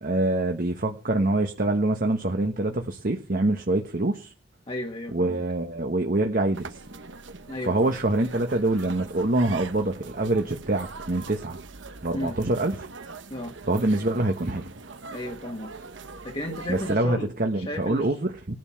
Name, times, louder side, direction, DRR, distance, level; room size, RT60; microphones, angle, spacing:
voice 1, 0.0-4.3 5.1-6.8 7.7-11.6 12.0-12.9 13.7-14.7 16.7-18.5, right 2 dB, 45° right, 1.3 m, -25 dB
voice 2, 4.7-5.4 7.5-8.0 12.1-12.4 13.3-13.5 15.1-15.8 16.2-17.3 17.5-18.2, left 1 dB, 30° left, 1.8 m, -34 dB
sound 1, 6.5-17.0, right 4 dB, 70° right, 1.1 m, -42 dB
18.0 x 10.5 x 5.8 m
head